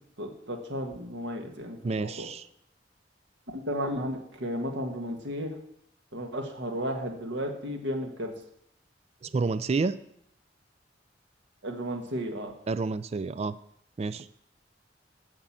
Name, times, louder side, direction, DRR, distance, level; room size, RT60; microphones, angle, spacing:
voice 1, 0.2-2.3 3.5-5.5 6.1-8.3 11.6-12.5, equal, 80° right, 4 dB, 1.6 m, -33 dB
voice 2, 1.8-2.5 9.2-10.0 12.7-13.6 14.0-14.3, right 4 dB, 35° right, 15 dB, 0.3 m, -29 dB
8.9 x 6.8 x 7.3 m, 0.73 s
head